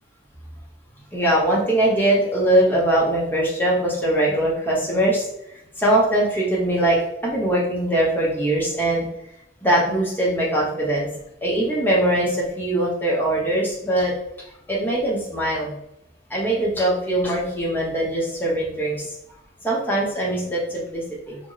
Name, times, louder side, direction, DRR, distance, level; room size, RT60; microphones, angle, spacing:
voice 1, 1.1-5.3 5.8-7.0 7.2-9.0 9.6-11.1 11.4-14.1 14.7-15.7 16.3-19.1 19.6-21.4, right 1 dB, 10° left, -5 dB, 0.8 m, -21 dB
3.1 x 2.0 x 3.8 m, 0.84 s
head